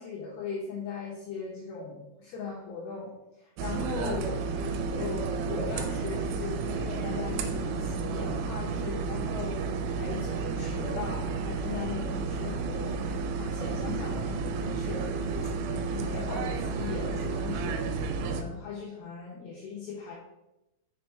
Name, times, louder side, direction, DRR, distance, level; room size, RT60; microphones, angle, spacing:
voice 1, 0.0-9.7 9.9-15.1 15.4-20.1, left 4 dB, 70° left, -6 dB, 3.1 m, -39 dB
sound 1, 3.6-18.4, right 4 dB, 85° right, 3.1 m, -32 dB
7.0 x 5.1 x 3.4 m, 0.92 s
omnidirectional pair, 5.6 m